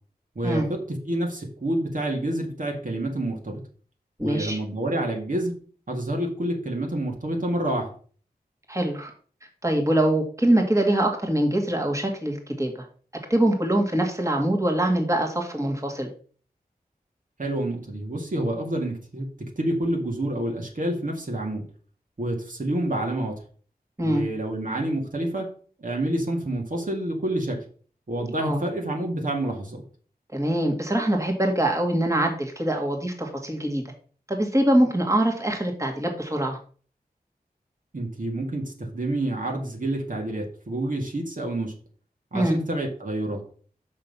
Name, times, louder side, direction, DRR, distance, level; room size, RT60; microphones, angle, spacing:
voice 1, 0.4-3.6 4.2-5.5 5.9-8.0 17.4-21.7 22.2-23.4 24.0-25.5 25.8-27.6 28.1-29.8 37.9-41.7 42.3-43.5, right 1 dB, 55° right, 1 dB, 2.1 m, -28 dB
voice 2, 4.2-4.6 8.7-9.1 9.6-12.9 13.3-16.1 24.0-24.2 28.4-28.6 30.3-33.8 34.3-36.6 42.3-42.6, right 1 dB, 20° right, 1 dB, 1.9 m, -23 dB
6.5 x 5.9 x 5.4 m, 0.42 s
wide cardioid pair, 70°, 16 cm